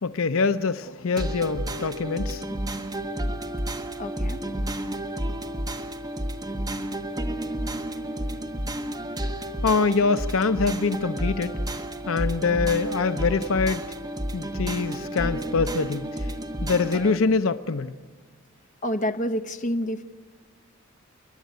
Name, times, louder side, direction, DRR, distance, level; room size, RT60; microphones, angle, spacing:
voice 1, 0.0-2.4 9.6-11.6 12.1-13.8 14.3-16.3 16.6-17.9, left 4 dB, 75° left, 12 dB, 0.7 m, -24 dB
sound 1, 1.2-17.2, right 1 dB, 20° right, 1.1 m, -31 dB
voice 2, 4.0-4.5 18.8-20.0, equal, 40° left, 9 dB, 1.0 m, -28 dB
30.0 x 11.0 x 9.4 m, 1.4 s
head